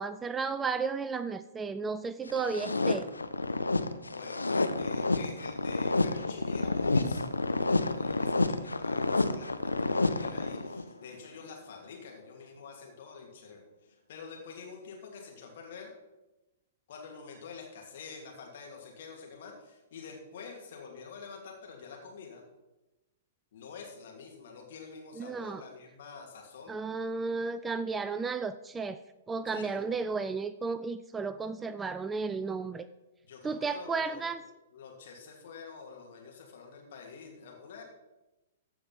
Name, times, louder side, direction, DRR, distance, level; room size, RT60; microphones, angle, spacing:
voice 1, 0.0-3.1 25.2-25.6 26.7-29.0 29.3-32.9 33.4-34.4, right 4 dB, 15° right, 13 dB, 0.4 m, -33 dB
sound 1, 2.3-10.9, left 3 dB, 80° left, 0.6 m, -29 dB
voice 2, 4.1-15.9 16.9-22.4 23.5-26.7 29.5-29.8 33.2-37.8, left 5 dB, 55° left, 1 dB, 2.6 m, -47 dB
14.5 x 4.9 x 5.8 m, 1.0 s
figure-of-eight pair, 110°, 0 cm